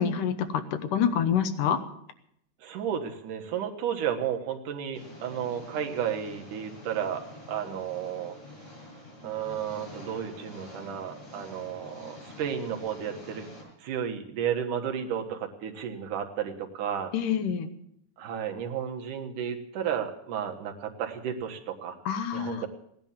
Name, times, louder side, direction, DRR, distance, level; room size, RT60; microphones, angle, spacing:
voice 1, 0.0-1.8 17.1-17.7 22.1-22.7, left 8 dB, 80° left, 9 dB, 2.6 m, -27 dB
voice 2, 2.6-8.4 9.2-13.5 13.8-17.1 18.2-22.0 22.3-22.7, right 8 dB, 75° right, 3 dB, 2.9 m, -33 dB
Engine, 4.9-13.6, left 1 dB, 50° left, 9.3 m, -46 dB
16.5 x 10.5 x 7.2 m, 0.73 s
omnidirectional pair, 3.7 m